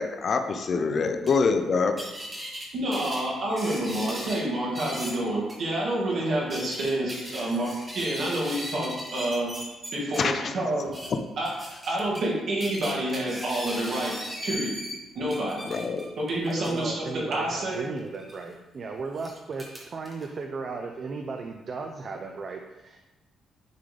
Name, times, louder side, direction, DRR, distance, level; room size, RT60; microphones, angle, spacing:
voice 1, 0.0-2.0 10.2-10.5 11.1-11.2 15.7-16.0, left 5 dB, 40° left, 7 dB, 0.4 m, -25 dB
sound 1, 1.3-1.4 2.0-2.7 2.9-4.4 4.7-5.1 5.5-5.6 6.3-10.2 10.8-11.1 11.4-12.3 12.6-15.0 15.3-16.8 18.1-18.4 19.1-20.2, equal, 15° right, 1.3 m, -38 dB
voice 2, 2.7-9.5 9.9-10.9 11.4-11.5 11.9-14.1 14.4-14.7 15.1-15.6 16.2-17.9, right 1 dB, 55° right, -4 dB, 2.0 m, -28 dB
voice 3, 16.5-23.1, right 4 dB, 40° right, 4 dB, 0.4 m, -36 dB
9.1 x 3.8 x 3.3 m, 1.1 s
cardioid pair, 155°, 0 cm